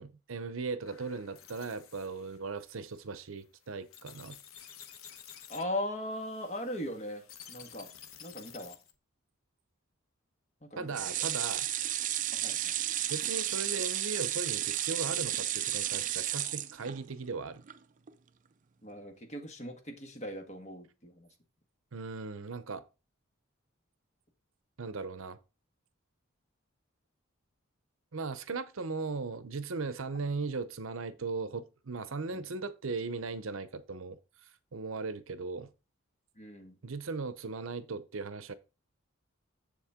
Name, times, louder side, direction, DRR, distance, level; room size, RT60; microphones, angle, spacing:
voice 1, 0.0-4.4 10.8-11.7 13.1-17.6 21.9-22.8 24.8-25.4 28.1-34.2 34.7-35.7 36.8-38.5, right 4 dB, 70° right, 0.7 m, -38 dB
sound 1, 0.9-9.0, left 8 dB, 80° left, 0.9 m, -52 dB
voice 2, 5.5-7.9 8.2-8.8 10.6-11.1 12.3-13.0 18.8-21.3 32.3-32.4 36.3-36.8, left 1 dB, 35° left, 1.7 m, -39 dB
sound 2, 10.9-17.3 17.7-17.8 18.1-18.2, right 12 dB, 35° right, 0.4 m, -33 dB
7.3 x 7.2 x 3.7 m
head